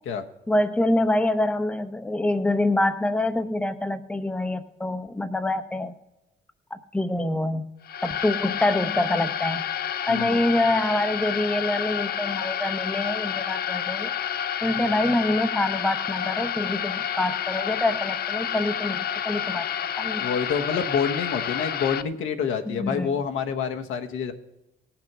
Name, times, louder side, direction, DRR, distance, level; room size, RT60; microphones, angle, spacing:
voice 1, 0.5-5.9 6.7-7.6 8.0-9.7 10.1-14.1 14.6-19.7 20.0-20.3 22.7-23.2, left 1 dB, 5° left, 10 dB, 0.6 m, -25 dB
sound 1, 7.8-22.0, left 9 dB, 50° left, 0.5 m, -29 dB
voice 2, 10.1-10.4 14.7-14.9 20.2-24.3, left 6 dB, 80° left, 5 dB, 1.1 m, -27 dB
17.5 x 5.9 x 6.0 m, 0.94 s
cardioid pair, 90°, 20 cm